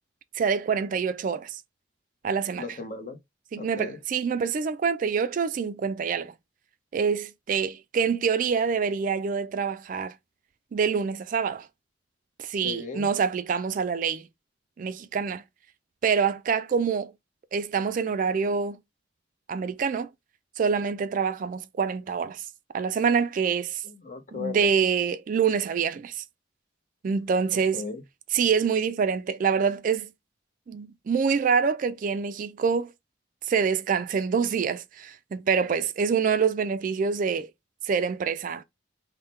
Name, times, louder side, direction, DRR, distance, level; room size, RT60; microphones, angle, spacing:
voice 1, 0.4-1.6 2.2-2.6 3.5-6.3 6.9-10.1 10.7-11.7 12.4-14.3 14.8-15.4 16.0-17.1 17.5-18.8 19.5-20.1 20.6-22.4 22.7-23.8 24.3-26.2 27.0-27.8 28.3-30.1 30.7-32.9 33.5-37.5 37.8-38.6, right 6 dB, 45° right, 0.3 m, -26 dB
voice 2, 2.6-3.2 3.6-4.0 12.5-13.1 23.8-24.7 27.7-28.0, left 4 dB, 45° left, 0.8 m, -37 dB
3.5 x 2.1 x 4.1 m
head